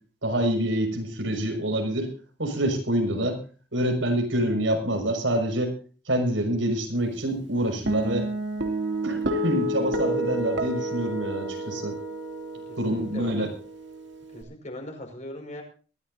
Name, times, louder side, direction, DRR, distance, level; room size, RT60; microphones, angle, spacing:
voice 1, 0.2-2.1 2.4-3.4 3.7-5.7 6.1-8.3 9.0-11.9 12.8-13.5, right 1 dB, 85° right, 4 dB, 6.0 m, -26 dB
Guitar, 7.9-14.4, right 1 dB, 70° right, 2.7 m, -30 dB
voice 2, 12.7-13.5 14.3-15.6, left 1 dB, 40° left, 3 dB, 5.3 m, -39 dB
23.0 x 14.5 x 2.7 m, 0.39 s
head